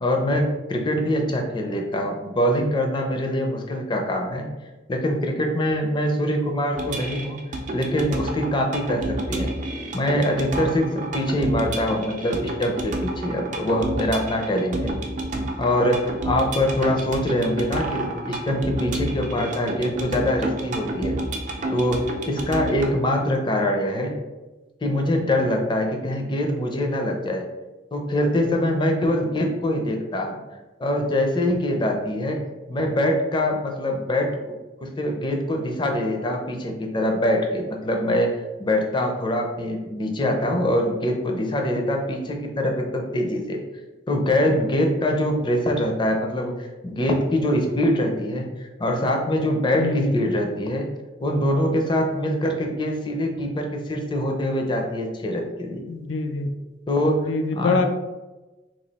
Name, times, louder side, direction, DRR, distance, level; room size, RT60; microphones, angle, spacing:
voice 1, 0.0-4.5 4.9-7.4 7.7-9.5 9.9-14.9 15.6-21.2 21.7-24.1 24.8-27.4 27.9-30.4 30.8-32.4 32.7-34.3 34.8-38.3 38.6-43.6 44.1-50.9 51.2-55.8 56.9-57.2 57.5-57.8, left 1 dB, 25° left, 2 dB, 0.5 m, -24 dB
sound 1, 6.8-22.9, right 1 dB, 45° right, 0.5 m, -30 dB
voice 2, 49.8-50.1 55.9-56.5 57.3-57.9, left 3 dB, 90° left, 7 dB, 0.4 m, -24 dB
3.0 x 2.4 x 4.0 m, 1.1 s
head